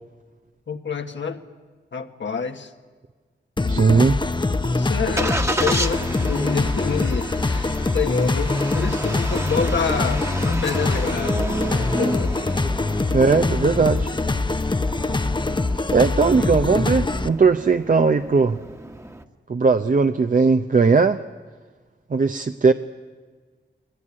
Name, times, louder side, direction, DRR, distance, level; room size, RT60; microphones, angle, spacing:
voice 1, 0.7-1.4 1.9-2.7 3.6-3.8 4.7-12.5, left 6 dB, 75° left, 6 dB, 1.5 m, -28 dB
sound 1, 3.6-17.3, left 3 dB, 25° left, 0.8 m, -23 dB
voice 2, 3.7-4.2 13.1-14.1 15.9-18.6 19.5-21.2 22.1-22.7, right 4 dB, 45° right, 8 dB, 0.7 m, -18 dB
Engine starting, 4.0-19.2, right 1 dB, 15° right, 1.4 m, -32 dB
22.5 x 18.5 x 9.8 m, 1.5 s
cardioid pair, 60°, 19 cm